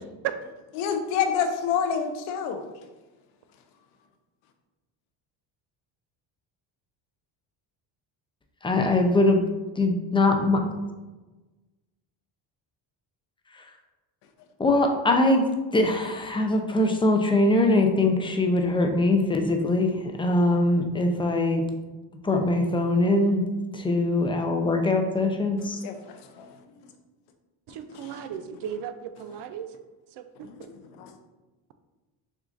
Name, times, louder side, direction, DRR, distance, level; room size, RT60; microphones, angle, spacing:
voice 1, 0.7-2.6 25.8-25.9 26.4-26.5 27.9-28.2 30.4-30.6 31.0-31.1, left 7 dB, 85° left, 6 dB, 0.6 m, -27 dB
voice 2, 8.6-9.4 9.8-10.6 14.6-15.5 15.7-21.6 22.2-23.5 23.7-25.8, left 2 dB, 10° left, 4 dB, 0.4 m, -22 dB
voice 3, 27.7-29.7, right 8 dB, 55° right, 9 dB, 0.5 m, -36 dB
6.1 x 2.5 x 2.5 m, 1.2 s
supercardioid pair, 75°, 49 cm